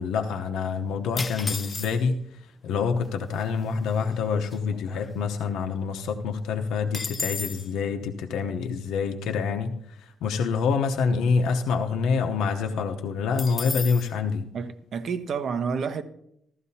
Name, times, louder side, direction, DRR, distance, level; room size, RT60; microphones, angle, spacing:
voice 1, 0.0-2.2 2.6-14.5, left 5 dB, 85° left, 0.9 m, -26 dB
sound 1, 1.2-2.3 3.1-3.2 3.3-3.7 4.1-5.6 5.9-6.0 6.3-7.7 13.4-14.1, left 4 dB, 30° left, 0.3 m, -34 dB
voice 2, 14.5-16.0, right 6 dB, 60° right, 1.0 m, -29 dB
15.0 x 13.0 x 2.8 m
cardioid pair, 90°, 0 cm